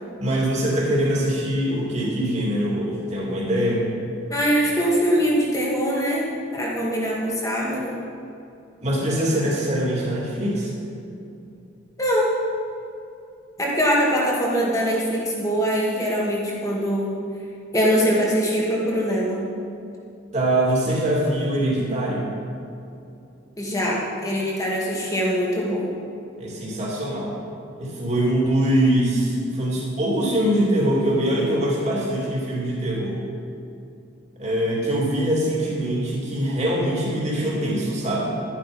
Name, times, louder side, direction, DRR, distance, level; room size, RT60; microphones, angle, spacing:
voice 1, 0.2-3.9 8.8-10.7 20.3-22.3 26.4-27.4 27.8-33.2 34.4-38.3, right 1 dB, 35° right, -3 dB, 2.7 m, -23 dB
voice 2, 4.3-8.0 12.0-12.3 13.6-17.1 17.7-19.4 23.6-25.9, equal, 15° left, -4 dB, 2.1 m, -22 dB
12.0 x 10.5 x 5.3 m, 2.7 s
head